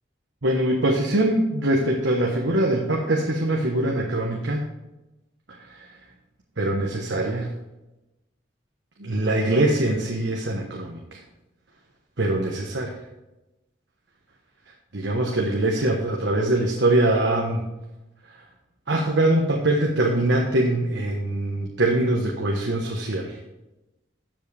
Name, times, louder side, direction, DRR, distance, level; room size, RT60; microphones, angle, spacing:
voice 1, 0.4-4.6 5.5-5.9 6.6-7.5 9.0-11.2 12.2-12.9 14.9-17.7 18.9-23.4, right 1 dB, 90° right, 0 dB, 1.2 m, -23 dB
12.5 x 7.4 x 3.5 m, 0.99 s
head